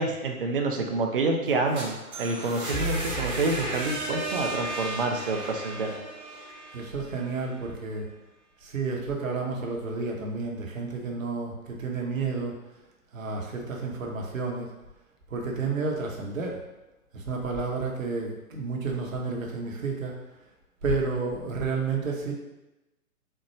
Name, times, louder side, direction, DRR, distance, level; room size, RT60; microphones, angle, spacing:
voice 1, 0.0-6.0, right 3 dB, 40° right, 2 dB, 0.4 m, -28 dB
sound 1, 1.5-7.4, right 2 dB, 10° right, 0.8 m, -33 dB
voice 2, 6.7-8.0 8.6-12.6 13.1-14.7 15.3-16.6 17.1-20.2 20.8-22.3, right 4 dB, 60° right, 0 dB, 0.9 m, -31 dB
4.3 x 2.2 x 3.0 m, 1.0 s
figure-of-eight pair, 130°, 44 cm